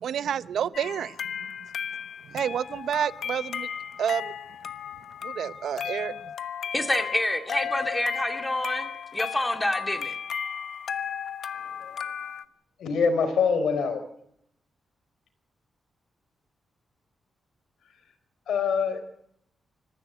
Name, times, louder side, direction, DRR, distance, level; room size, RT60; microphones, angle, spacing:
voice 1, 0.0-1.1 2.3-3.7 4.0-4.3 5.2-6.1, right 8 dB, 75° right, 15 dB, 0.8 m, -29 dB
sound 1, 0.7-12.4, left 8 dB, 65° left, 1.1 m, -35 dB
voice 2, 6.7-10.1, left 1 dB, 10° left, 6 dB, 2.5 m, -27 dB
voice 3, 12.8-14.0 18.5-19.0, left 5 dB, 80° left, 8 dB, 4.7 m, -24 dB
26.0 x 15.0 x 9.1 m, 0.74 s
wide cardioid pair, 140°, 0 cm